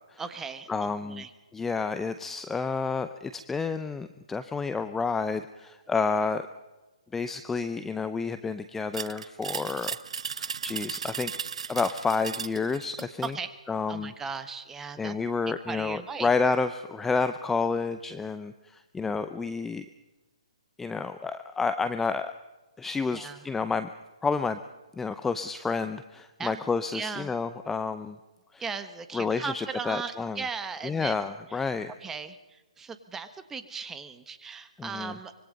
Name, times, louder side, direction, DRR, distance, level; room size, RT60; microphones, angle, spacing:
voice 1, 0.2-1.3 13.2-13.5 13.9-15.1 15.7-16.3 23.1-23.4 26.4-26.6 26.9-27.3 28.6-31.7 32.0-35.3, right 5 dB, 10° right, 11 dB, 1.4 m, -37 dB
voice 2, 0.7-1.2 1.5-6.5 7.1-10.0 10.3-11.3 11.7-13.3 13.7-14.1 15.0-19.9 20.8-22.3 22.8-23.9 24.2-24.6 25.0-28.2 28.5-28.6 29.1-30.4 30.8-31.9 34.8-35.2, left 4 dB, 10° left, 11 dB, 0.7 m, -30 dB
sound 1, 8.9-13.4, right 6 dB, 65° right, 0.9 m, -36 dB
25.0 x 22.5 x 5.4 m, 1.1 s
hypercardioid pair, 140°, 4 cm